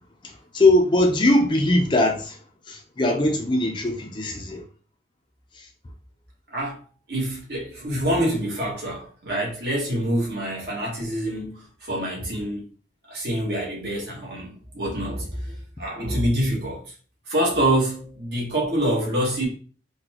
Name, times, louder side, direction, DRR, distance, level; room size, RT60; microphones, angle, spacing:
voice 1, 0.5-2.4 2.7-4.6, left 1 dB, 25° left, 0.4 m, -20 dB
voice 2, 7.1-12.7 13.1-16.8 17.3-19.5, right 1 dB, 60° right, 1.2 m, -26 dB
3.9 x 2.2 x 2.9 m
head